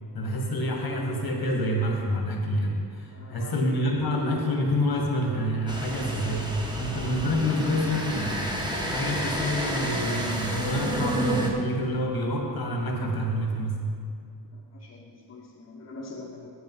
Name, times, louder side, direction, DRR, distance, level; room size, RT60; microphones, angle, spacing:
voice 1, 0.1-6.5 6.8-8.5 8.9-13.8, equal, 75° left, 1 dB, 1.9 m, -27 dB
voice 2, 3.1-3.5 14.5-16.5, left 3 dB, 45° left, -3 dB, 1.1 m, -44 dB
sound 1, 5.7-11.5, right 1 dB, 10° right, 1.1 m, -30 dB
8.9 x 8.7 x 5.7 m, 2.4 s
wide cardioid pair, 155°, 37 cm